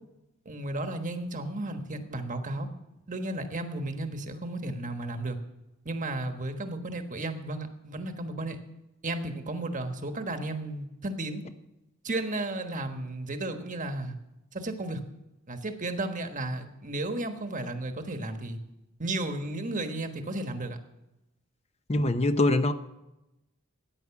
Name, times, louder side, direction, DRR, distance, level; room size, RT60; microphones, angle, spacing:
voice 1, 0.4-2.7 3.1-5.4 5.8-8.6 9.0-11.4 12.0-14.2 14.5-15.0 15.5-18.6 19.0-20.8, right 2 dB, 35° right, 7 dB, 1.3 m, -33 dB
voice 2, 21.9-22.7, left 2 dB, 30° left, 10 dB, 0.7 m, -23 dB
14.5 x 9.6 x 7.0 m, 0.95 s
head